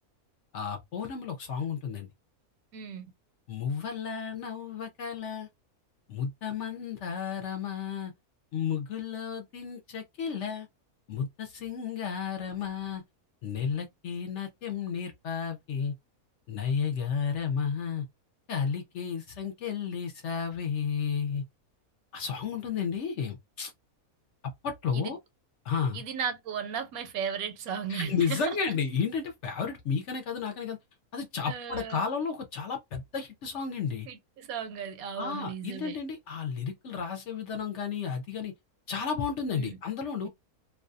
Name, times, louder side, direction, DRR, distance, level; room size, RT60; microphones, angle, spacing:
voice 1, 0.5-2.1 3.5-5.5 6.1-8.1 8.5-10.7 11.1-13.0 13.4-15.9 16.5-18.1 18.5-21.4 22.1-23.7 24.6-25.2 25.6-26.0 27.9-30.8 31.1-34.1 35.2-38.5 38.9-40.3, left 6 dB, 65° left, 0.7 m, -32 dB
voice 2, 2.7-3.1 24.9-25.2 25.9-28.6 31.5-32.0 34.1-36.0 39.5-39.8, right 7 dB, 75° right, 1.1 m, -35 dB
2.6 x 2.2 x 2.4 m
omnidirectional pair, 1.6 m